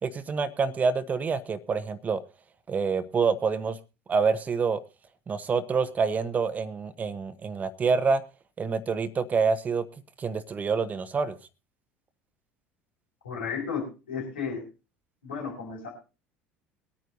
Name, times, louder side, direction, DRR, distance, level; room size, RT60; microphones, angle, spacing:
voice 1, 0.0-2.2 2.7-3.8 4.1-4.8 5.3-8.2 8.6-9.8 10.2-11.4, right 5 dB, 25° right, 11 dB, 1.1 m, -27 dB
voice 2, 13.2-14.6 15.2-15.9, left 6 dB, 75° left, -5 dB, 5.1 m, -33 dB
23.5 x 9.2 x 2.6 m, 0.31 s
figure-of-eight pair, 65°, 6 cm